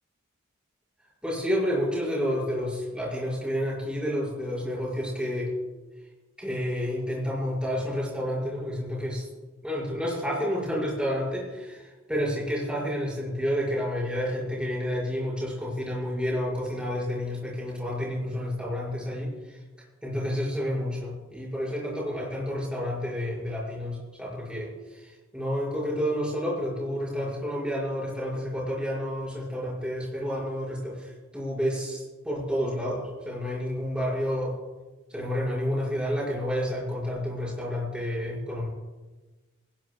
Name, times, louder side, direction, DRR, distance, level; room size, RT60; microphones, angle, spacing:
voice 1, 1.2-5.5 6.4-9.3 9.6-19.6 20.0-34.6 35.1-38.7, equal, 5° right, -5 dB, 5.9 m, -30 dB
21.0 x 18.5 x 2.4 m, 1.2 s
head